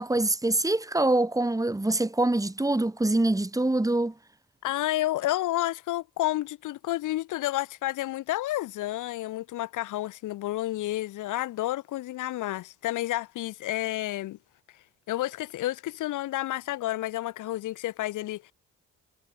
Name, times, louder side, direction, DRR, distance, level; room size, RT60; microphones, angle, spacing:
voice 1, 0.0-4.1, right 2 dB, 10° right, 5.2 m, -25 dB
voice 2, 4.6-14.4 15.1-18.5, left 15 dB, 85° left, 2.1 m, -30 dB
cardioid pair, 90°, 30 cm